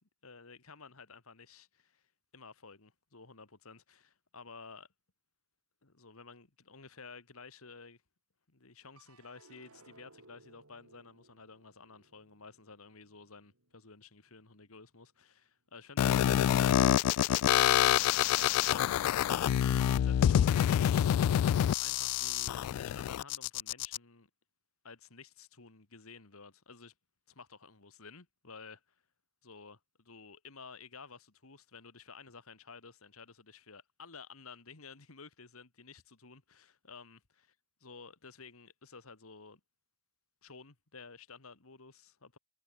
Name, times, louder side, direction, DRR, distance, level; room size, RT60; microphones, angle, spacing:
voice 1, 0.2-2.0 2.3-4.9 5.8-8.0 8.5-16.6 17.1-21.1 21.8-24.3 24.8-26.9 27.3-28.8 29.4-29.8 30.1-37.2 37.8-39.6 40.4-42.4, left 4 dB, 70° left, 2.0 m, -53 dB
sound 1, 9.0-15.4 15.8-16.5, right 2 dB, 75° right, 6.3 m, -63 dB
sound 2, 16.0-24.0, left 10 dB, 90° left, 0.3 m, -27 dB
head